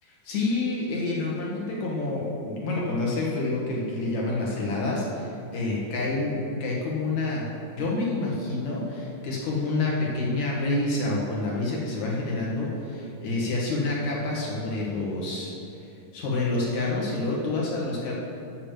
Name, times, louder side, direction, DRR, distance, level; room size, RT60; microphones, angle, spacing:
voice 1, 0.2-15.5 16.1-18.1, left 2 dB, 60° left, -4 dB, 3.1 m, -28 dB
8.3 x 6.8 x 7.4 m, 2.6 s
omnidirectional pair, 3.8 m